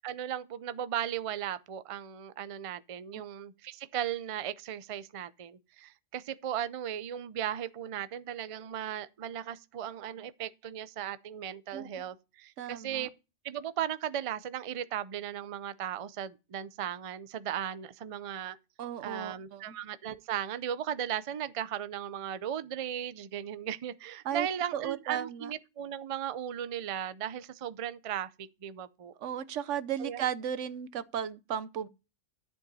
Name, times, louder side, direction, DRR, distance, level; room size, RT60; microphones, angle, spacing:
voice 1, 0.0-13.1 13.4-18.6 19.0-29.1 30.0-30.2, right 10 dB, 45° right, 0.4 m, -36 dB
voice 2, 12.6-13.1 18.8-19.8 24.2-24.5 24.7-25.5 29.2-31.9, right 9 dB, 85° right, 1.1 m, -35 dB
11.0 x 7.1 x 4.0 m
omnidirectional pair, 1.2 m